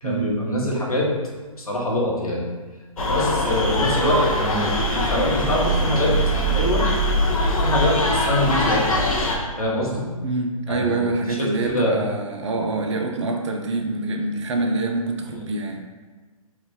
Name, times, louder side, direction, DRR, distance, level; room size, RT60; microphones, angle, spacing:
voice 1, 0.0-1.1 1.6-2.4 3.1-6.1 6.5-6.8 7.6-8.8 9.6-10.1 10.7-11.0 11.4-12.0, left 1 dB, 90° left, -4 dB, 1.0 m, -24 dB
sound 1, 3.0-9.4, equal, 70° left, 0.7 m, -22 dB
voice 2, 10.2-15.8, right 2 dB, 55° right, 3 dB, 0.5 m, -25 dB
3.0 x 2.3 x 3.7 m, 1.3 s
figure-of-eight pair, 130°, 18 cm